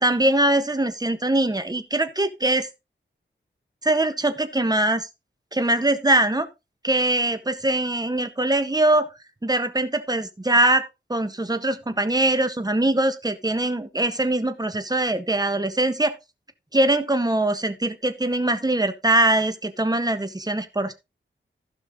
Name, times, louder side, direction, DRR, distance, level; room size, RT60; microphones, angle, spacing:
voice 1, 0.0-2.7 3.8-5.1 5.5-6.5 6.8-9.1 9.4-16.2 16.7-20.9, right 1 dB, 20° right, 1.4 m, -22 dB
15.5 x 5.6 x 3.8 m
wide cardioid pair, 110°, 20 cm